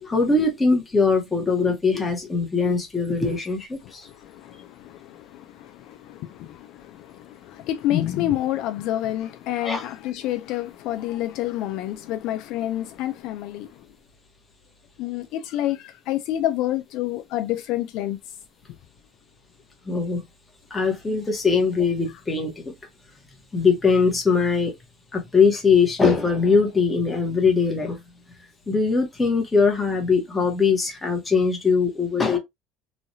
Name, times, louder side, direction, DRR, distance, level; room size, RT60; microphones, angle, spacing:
voice 1, 0.0-4.1 9.6-9.8 19.9-20.2 20.7-22.7 23.5-24.7 25.1-28.0 28.7-32.4, left 4 dB, 15° left, 0.9 m, -21 dB
voice 2, 3.8-13.9 15.0-18.2, left 13 dB, 60° left, 0.3 m, -28 dB
3.1 x 2.3 x 2.6 m
cardioid pair, 145°, 0 cm